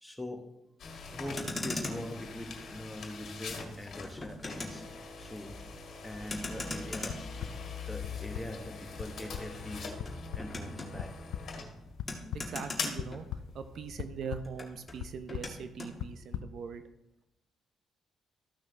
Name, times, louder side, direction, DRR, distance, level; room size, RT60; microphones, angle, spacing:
voice 1, 0.0-0.5 1.1-4.9 5.2-5.6 6.0-7.2 7.9-10.0 10.3-11.1, left 1 dB, 5° left, 4 dB, 1.3 m, -42 dB
sound 1, 0.8-14.0, left 4 dB, 60° left, 1.9 m, -43 dB
Motor vehicle (road), 1.2-13.8 14.1-16.0, left 2 dB, 20° left, 1.8 m, -42 dB
sound 2, 7.1-7.5 8.0-8.4 9.0-9.1 9.3-9.4 10.0-10.1 10.3-10.4 11.0-11.4 12.0-12.4 13.0-13.5 14.0-14.4 15.0-15.1 15.3-15.5 16.0-16.4, left 12 dB, 85° left, 0.4 m, -37 dB
voice 2, 12.3-16.8, right 6 dB, 65° right, 9 dB, 0.7 m, -41 dB
14.0 x 6.0 x 3.2 m, 0.93 s
cardioid pair, 90°, 0 cm